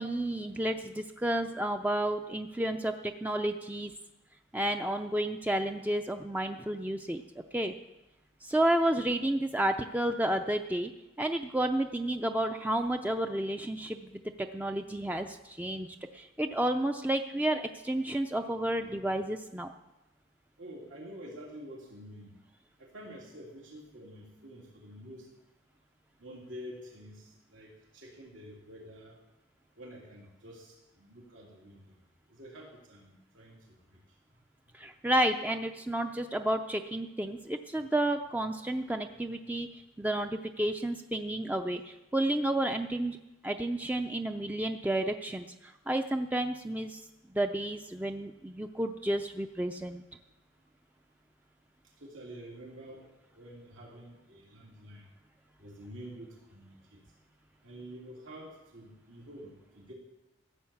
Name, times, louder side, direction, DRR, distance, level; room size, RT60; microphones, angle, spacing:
voice 1, 0.0-3.9 4.5-7.2 7.5-7.7 8.4-10.9 11.2-19.7 34.7-43.2 43.4-47.0 47.3-50.0, right 1 dB, 10° right, 6 dB, 0.4 m, -31 dB
voice 2, 20.6-22.3 22.8-25.3 26.2-29.1 29.8-32.0 32.3-34.0 52.0-53.0 53.3-55.1 55.6-57.0 57.6-59.9, equal, 85° right, -3 dB, 3.2 m, -48 dB
15.0 x 8.9 x 7.2 m, 0.99 s
head